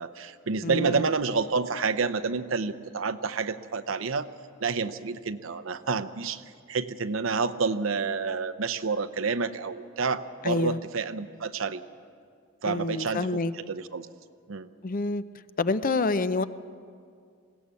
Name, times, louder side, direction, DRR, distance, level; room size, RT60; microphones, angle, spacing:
voice 1, 0.0-4.3 4.6-6.4 6.7-11.8 12.6-13.3 13.5-14.1 14.5-14.7, right 4 dB, 80° right, 13 dB, 0.8 m, -29 dB
voice 2, 0.6-1.1 10.4-10.8 12.7-13.5 14.8-15.2 15.6-16.4, left 3 dB, 45° left, 13 dB, 0.6 m, -27 dB
21.0 x 17.0 x 8.3 m, 2.2 s
head